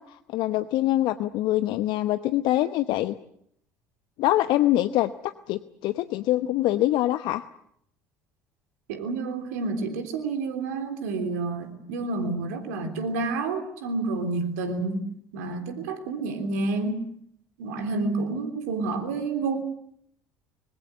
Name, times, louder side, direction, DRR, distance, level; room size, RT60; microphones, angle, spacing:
voice 1, 0.0-3.1 4.2-7.4, left 15 dB, 60° left, 12 dB, 0.9 m, -24 dB
voice 2, 8.9-15.0 15.3-17.0 17.6-19.6, right 3 dB, 75° right, 7 dB, 3.4 m, -29 dB
25.5 x 21.5 x 8.0 m, 0.70 s
hypercardioid pair, 60°, 9 cm